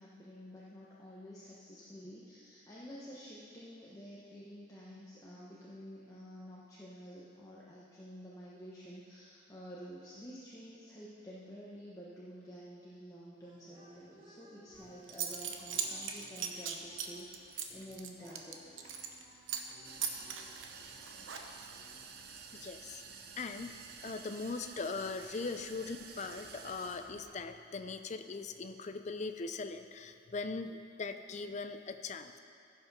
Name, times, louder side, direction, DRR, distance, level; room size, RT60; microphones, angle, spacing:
voice 1, 0.0-18.6 18.9-19.0, equal, 15° left, -7 dB, 1.0 m, -50 dB
sound 1, 13.4-22.6, right 1 dB, 25° right, 1.5 m, -61 dB
Zipper (clothing) / Coin (dropping), 14.7-14.8 15.1-19.2 19.5-19.7 20.0-21.8, right 7 dB, 80° right, 0.9 m, -39 dB
sound 2, 19.8-27.5, right 5 dB, 50° right, 0.8 m, -51 dB
voice 2, 22.5-23.0 23.4-23.7 24.0-32.4, left 4 dB, 35° left, 8 dB, 0.4 m, -40 dB
15.0 x 5.8 x 5.4 m, 2.6 s
head